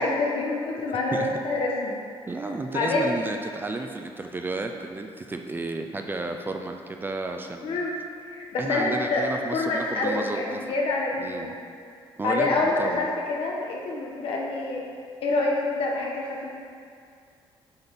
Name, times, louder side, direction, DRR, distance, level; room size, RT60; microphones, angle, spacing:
voice 1, 0.0-2.0 2.7-3.1 7.6-7.9 8.3-9.3 9.5-11.5 12.2-14.8 15.2-16.6, left 3 dB, 65° left, -2 dB, 1.1 m, -26 dB
voice 2, 2.3-7.8 8.6-10.7 11.2-11.5 12.2-13.0, right 2 dB, 20° right, 4 dB, 0.4 m, -32 dB
7.8 x 4.1 x 3.5 m, 2.4 s
cardioid pair, 110°, 10 cm